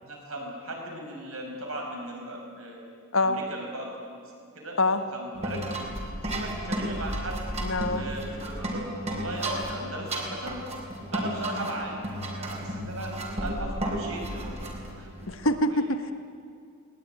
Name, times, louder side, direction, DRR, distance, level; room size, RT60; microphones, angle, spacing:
voice 1, 0.0-2.8 3.2-4.2 4.5-5.8 6.2-7.5 7.9-10.6 11.1-13.1 13.4-14.6 15.0-15.1 15.7-15.8, right 1 dB, 75° right, 0 dB, 6.3 m, -37 dB
sound 1, 5.3-15.6, right 1 dB, 30° right, 4.0 m, -33 dB
voice 2, 7.6-8.1 15.3-16.1, left 2 dB, 65° left, 9 dB, 1.5 m, -25 dB
21.0 x 19.5 x 9.7 m, 2.3 s
head